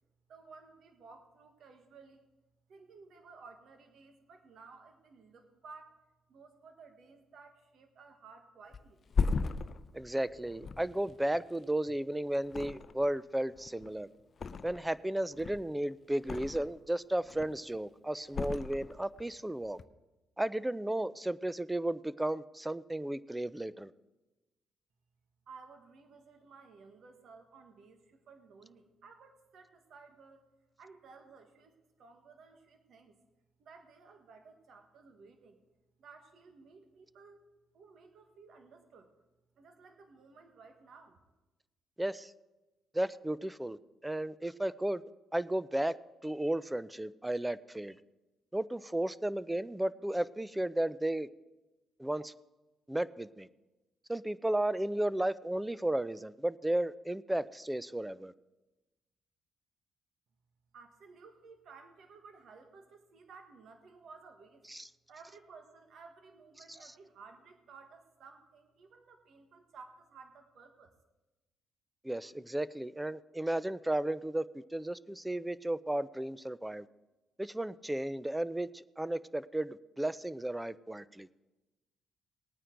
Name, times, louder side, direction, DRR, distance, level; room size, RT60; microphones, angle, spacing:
voice 1, 0.3-2.3 2.7-6.0 6.3-9.0 25.5-30.5 30.8-33.2 33.6-35.6 36.0-37.5 37.7-39.1 39.5-41.2 60.7-64.7 65.1-71.0, right 4 dB, 65° right, 5 dB, 1.5 m, -56 dB
Thump thud, 8.7-12.0 12.4-13.2 13.5-15.0 15.3-16.9 17.2-17.8 18.3-19.3 19.6-19.8, left 4 dB, 45° left, 0.6 m, -37 dB
voice 2, 9.9-14.1 14.6-19.8 20.4-23.9 42.0-42.3 42.9-43.8 44.0-45.0 45.3-45.9 46.2-47.9 48.5-51.3 52.0-52.3 52.9-53.5 54.1-58.3 64.7-64.9 72.0-74.4 74.7-76.9 77.4-81.3, right 1 dB, 10° right, 17 dB, 0.4 m, -34 dB
19.0 x 9.2 x 3.9 m, 1.1 s
cardioid pair, 90°, 0 cm